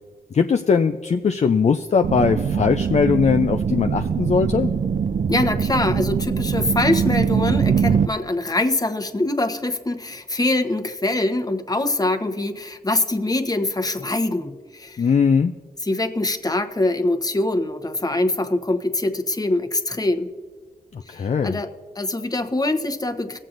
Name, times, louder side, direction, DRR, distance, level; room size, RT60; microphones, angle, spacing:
voice 1, 0.3-4.7 15.0-15.5 20.9-21.6, left 6 dB, 45° left, 6 dB, 0.4 m, -20 dB
sound 1, 2.0-8.1, right 6 dB, 50° right, 0.4 m, -22 dB
voice 2, 5.3-15.1 15.8-20.3 21.1-21.7 22.0-23.4, left 2 dB, 25° left, 6 dB, 1.0 m, -23 dB
19.5 x 7.5 x 2.6 m, 1.5 s
cardioid pair, 45°, 16 cm